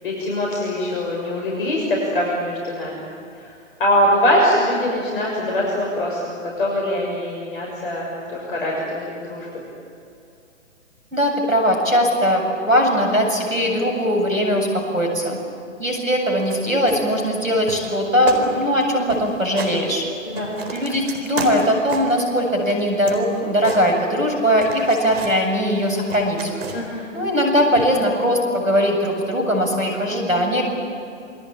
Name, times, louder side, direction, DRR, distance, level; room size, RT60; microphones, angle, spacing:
voice 1, 0.0-3.1 3.4-3.5 3.8-9.5 20.2-20.5 26.7-27.0, left 1 dB, 45° left, -2 dB, 6.5 m, -22 dB
voice 2, 11.1-14.7 14.9-15.4 15.8-20.0 20.7-26.5 27.1-30.6, equal, 85° right, 3 dB, 7.9 m, -20 dB
sound 1, 16.4-16.6 16.9-17.4 17.7-18.0 18.3-18.5 18.7-18.8 19.1-19.8 20.2-22.2 22.7-24.3 24.6-25.4 25.8-27.0 27.8-28.0, right 4 dB, 50° right, 4.4 m, -33 dB
28.0 x 21.5 x 9.0 m, 2.6 s
figure-of-eight pair, 130°, 39 cm